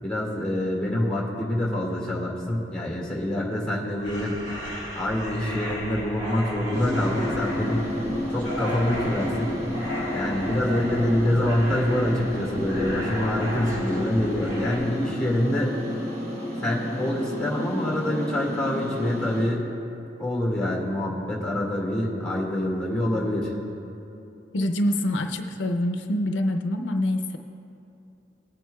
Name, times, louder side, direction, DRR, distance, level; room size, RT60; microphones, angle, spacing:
voice 1, 0.0-4.4 5.0-7.9 8.3-9.6 10.1-15.7 16.6-19.7 20.2-23.5, left 1 dB, 5° left, -3 dB, 2.0 m, -26 dB
sound 1, 4.0-14.8, equal, 80° right, 2.5 m, -35 dB
sound 2, 6.7-19.5, left 1 dB, 35° right, 1.5 m, -31 dB
voice 2, 24.5-27.4, left 1 dB, 85° left, 5 dB, 0.6 m, -25 dB
19.5 x 9.2 x 2.3 m, 2.8 s
head